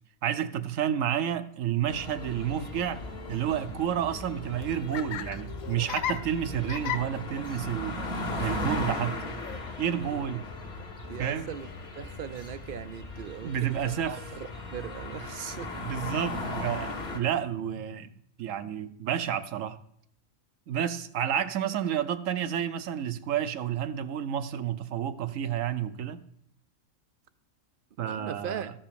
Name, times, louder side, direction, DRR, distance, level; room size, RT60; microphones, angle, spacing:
voice 1, 0.2-3.0 3.3-8.0 8.4-9.1 9.8-10.5 11.2-11.5 13.4-14.2 15.8-19.8 20.7-26.2 28.0-28.7, right 9 dB, 75° right, 11 dB, 1.1 m, -30 dB
sound 1, 1.9-17.2, left 2 dB, 50° left, 1.8 m, -37 dB
Laughter, 4.3-11.9, left 10 dB, 80° left, 1.0 m, -40 dB
voice 2, 8.3-8.9 11.1-15.7 28.0-28.7, right 8 dB, 60° right, 13 dB, 0.6 m, -39 dB
14.0 x 5.6 x 6.9 m, 0.70 s
omnidirectional pair, 1.4 m